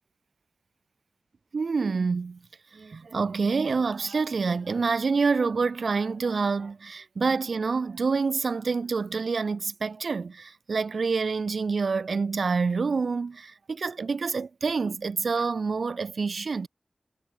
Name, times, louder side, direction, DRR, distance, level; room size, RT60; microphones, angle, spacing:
voice 1, 1.5-2.4 2.7-16.7, right 4 dB, 85° right, 0.8 m, -27 dB
wide cardioid pair, 70°, 0 cm